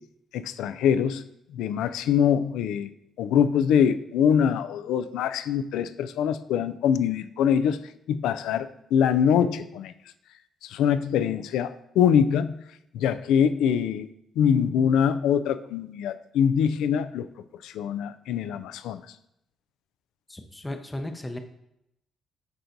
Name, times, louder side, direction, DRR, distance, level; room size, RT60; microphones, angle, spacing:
voice 1, 0.3-1.2 1.5-2.9 3.2-7.8 8.1-9.9 10.7-12.6 12.9-14.1 14.4-17.3 17.6-19.0, left 8 dB, 90° left, 12 dB, 0.3 m, -23 dB
voice 2, 20.3-21.4, left 1 dB, 15° left, 6 dB, 0.6 m, -35 dB
10.0 x 3.9 x 2.6 m, 0.80 s
cardioid pair, 90°, 0 cm